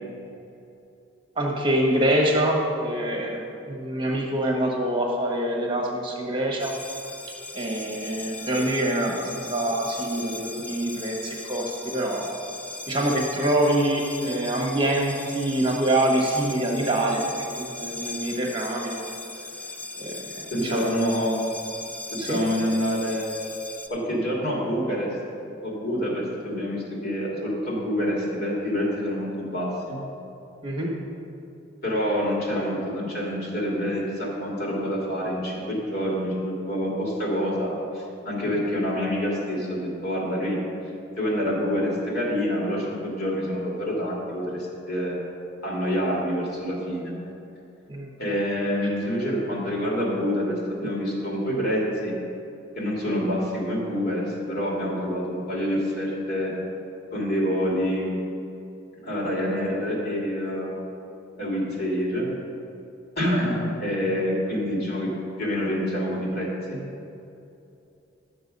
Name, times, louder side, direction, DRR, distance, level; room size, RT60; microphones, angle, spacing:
voice 1, 1.4-6.7 7.5-12.3 12.9-17.2 17.6-19.1 20.0-20.9 22.2-22.4 30.6-30.9 47.9-48.1 50.8-50.9, right 1 dB, 25° right, -1 dB, 1.2 m, -25 dB
sound 1, 6.6-23.9, left 2 dB, 5° left, 0.4 m, -38 dB
voice 2, 20.5-21.4 22.1-23.3 23.9-25.1 25.6-30.0 31.8-40.6 41.2-45.2 45.6-47.1 48.2-52.1 52.8-56.5 57.1-58.2 59.0-60.8 61.4-62.3 63.2-65.1 65.4-66.8, equal, 55° left, -3 dB, 2.5 m, -27 dB
11.5 x 6.7 x 5.4 m, 2.8 s
head